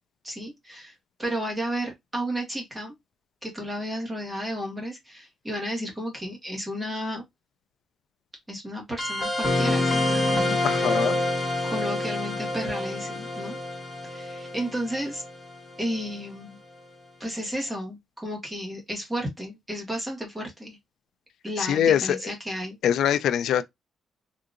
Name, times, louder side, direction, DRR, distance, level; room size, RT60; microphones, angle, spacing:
voice 1, 0.2-0.9 1.2-2.9 3.4-7.2 8.5-11.0 11.6-13.6 14.0-15.2 15.8-16.6 17.2-20.8 21.4-22.8, equal, 10° right, 1.4 m, -33 dB
sound 1, 9.0-16.1, left 2 dB, 10° left, 1.3 m, -27 dB
voice 2, 10.6-11.2 21.6-22.2 22.8-23.6, left 9 dB, 80° left, 0.3 m, -23 dB
3.7 x 2.7 x 2.5 m
cardioid pair, 155°, 0 cm